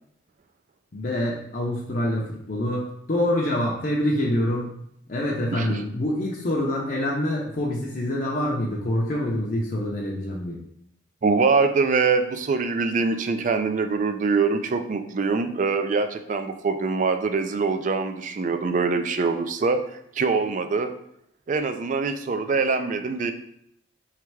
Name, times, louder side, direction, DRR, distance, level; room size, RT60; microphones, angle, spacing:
voice 1, 0.9-4.7 5.1-10.6, left 1 dB, 45° left, -2 dB, 0.6 m, -26 dB
voice 2, 5.5-5.8 11.2-19.8 20.2-20.9 21.5-23.3, right 4 dB, 40° right, 8 dB, 0.3 m, -24 dB
3.4 x 3.2 x 4.6 m, 0.73 s
head